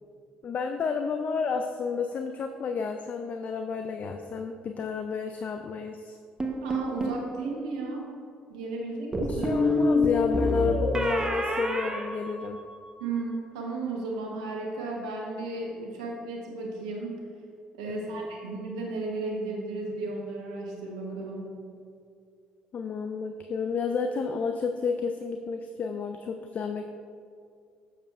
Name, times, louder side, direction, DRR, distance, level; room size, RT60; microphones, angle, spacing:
voice 1, 0.4-6.2 9.3-12.6 17.9-18.3 22.7-26.9, left 5 dB, 50° left, 6 dB, 0.4 m, -31 dB
sound 1, 6.4-7.2 9.1-12.9, left 1 dB, 20° right, 0.9 m, -27 dB
voice 2, 6.6-8.1 8.5-10.0 13.0-17.2 17.7-21.6, right 3 dB, 85° right, -1 dB, 1.0 m, -34 dB
7.1 x 6.8 x 2.4 m, 2.3 s
hypercardioid pair, 55°, 3 cm